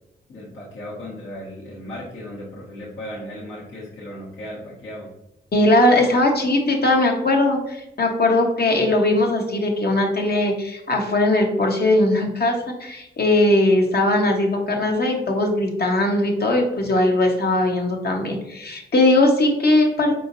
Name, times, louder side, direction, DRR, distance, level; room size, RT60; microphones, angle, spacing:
voice 1, 0.3-5.1, left 1 dB, 70° left, -7 dB, 1.5 m, -36 dB
voice 2, 5.5-20.1, left 1 dB, 50° left, 1 dB, 1.2 m, -19 dB
4.9 x 3.6 x 2.7 m, 0.87 s
supercardioid pair, 50°, 21 cm